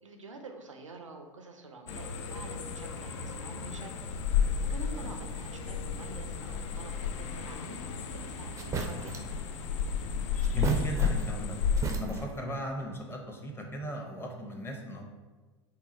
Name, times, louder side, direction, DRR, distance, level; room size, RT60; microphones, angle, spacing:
voice 1, 0.0-3.9 4.7-7.8 8.1-9.3, right 3 dB, 90° right, 4 dB, 0.5 m, -47 dB
sound 1, 1.9-12.0, left 6 dB, 65° left, 0.4 m, -33 dB
sound 2, 8.6-9.4 10.4-11.4 11.7-12.5, right 4 dB, 20° right, 0.4 m, -35 dB
voice 2, 10.5-11.6 12.0-15.0, right 1 dB, 15° left, 1 dB, 0.7 m, -36 dB
3.9 x 2.2 x 4.1 m, 1.3 s
hypercardioid pair, 85°, 16 cm